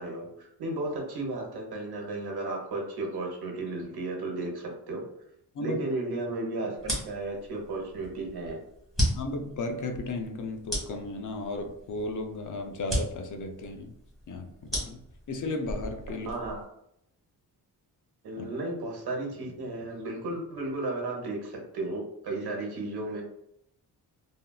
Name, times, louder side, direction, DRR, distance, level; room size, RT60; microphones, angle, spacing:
voice 1, 0.0-5.0 5.6-8.6 16.2-16.6 18.2-23.2, right 2 dB, 70° right, -1 dB, 1.0 m, -34 dB
sound 1, 6.8-16.6, equal, ahead, 1.3 m, -35 dB
voice 2, 9.1-13.9 14.3-16.3 18.4-18.5, left 2 dB, 55° left, 4 dB, 0.4 m, -35 dB
3.4 x 2.3 x 2.2 m, 0.75 s
wide cardioid pair, 145°, 39 cm